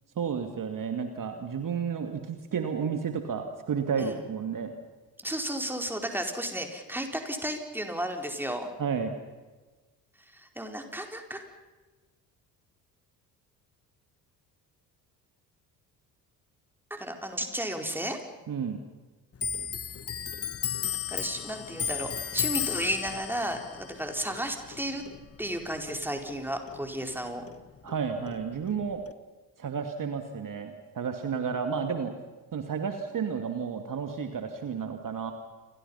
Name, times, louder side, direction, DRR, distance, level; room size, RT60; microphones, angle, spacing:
voice 1, 0.2-4.8 8.8-9.2 18.5-18.8 27.8-29.0 29.6-32.1 32.5-35.3, right 6 dB, 40° right, 6 dB, 2.3 m, -32 dB
voice 2, 5.2-8.7 10.3-11.4 16.9-18.2 21.1-25.0 25.4-27.4, right 1 dB, 5° right, 3 dB, 4.5 m, -33 dB
Clock, 19.4-26.4 26.7-28.0 28.3-29.1, left 8 dB, 30° left, 1.1 m, -35 dB
28.5 x 24.0 x 5.7 m, 1.2 s
hypercardioid pair, 55°, 50 cm